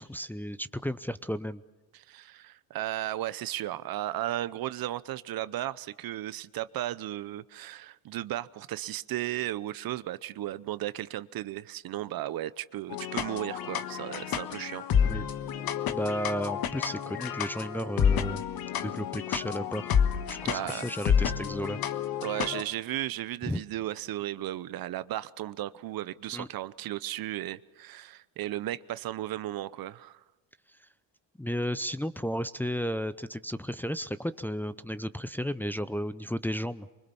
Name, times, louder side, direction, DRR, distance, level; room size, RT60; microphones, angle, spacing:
voice 1, 0.0-1.6 15.0-15.2 15.9-18.4 18.8-19.9 20.3-21.8 23.5-23.6 26.3-26.5 31.4-36.9, equal, 5° left, 11 dB, 0.7 m, -33 dB
voice 2, 1.9-14.8 20.4-20.9 22.2-30.2, right 14 dB, 60° right, 17 dB, 0.8 m, -35 dB
sound 1, 12.9-22.6, left 8 dB, 60° left, 1.5 m, -29 dB
24.5 x 21.5 x 7.0 m, 1.1 s
supercardioid pair, 85°, 41 cm